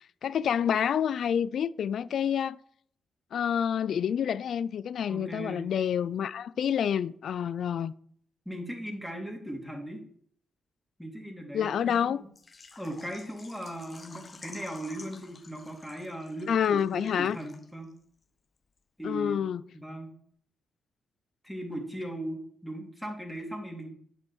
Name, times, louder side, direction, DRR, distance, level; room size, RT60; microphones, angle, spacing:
voice 1, 0.2-2.6 3.3-7.9 11.5-12.2 16.5-17.4 19.0-19.6, left 8 dB, 70° left, 0.4 m, -28 dB
voice 2, 5.1-5.7 8.4-10.0 11.0-12.3 12.7-17.9 19.0-19.4 19.7-20.1 21.4-23.9, equal, 5° left, 3.2 m, -38 dB
Water / Liquid, 12.4-18.0 18.2-18.3 18.8-18.9, left 4 dB, 45° left, 0.9 m, -51 dB
8.8 x 5.9 x 4.7 m
hypercardioid pair, 45°, 0 cm